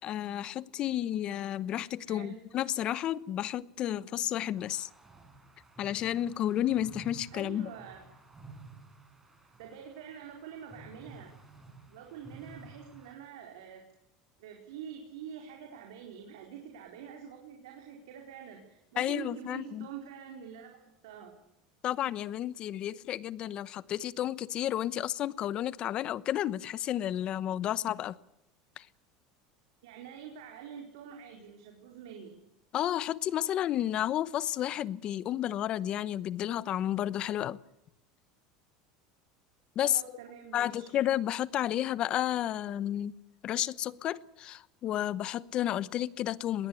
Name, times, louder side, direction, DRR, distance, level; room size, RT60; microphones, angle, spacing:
voice 1, 0.0-4.9 5.8-7.7 19.0-19.9 21.8-28.2 28.8-28.9 32.7-37.6 39.8-40.0 40.5-43.1 43.4-46.7, left 12 dB, 40° left, 0.9 m, -32 dB
voice 2, 2.0-2.4 7.3-8.0 9.6-11.3 11.9-13.8 14.4-21.4 29.8-32.4 39.8-40.9, right 8 dB, 90° right, 4.5 m, -46 dB
sound 1, 4.5-13.1, right 3 dB, 10° right, 5.5 m, -53 dB
21.0 x 18.0 x 8.4 m
supercardioid pair, 130°, 2 cm